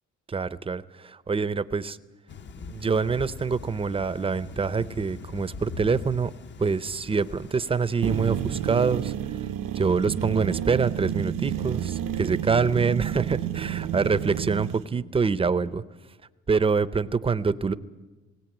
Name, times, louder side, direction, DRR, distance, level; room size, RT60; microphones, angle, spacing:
voice 1, 0.3-2.0 2.7-6.3 6.6-11.9 12.2-15.8 16.5-17.7, right 5 dB, 20° right, 15 dB, 0.6 m, -25 dB
Thunder / Rain, 2.3-8.9, left 5 dB, 35° left, 0.6 m, -42 dB
sound 1, 8.0-14.8, right 10 dB, 85° right, 1.0 m, -30 dB
19.0 x 18.0 x 8.9 m, 1.2 s
cardioid pair, 130°, 31 cm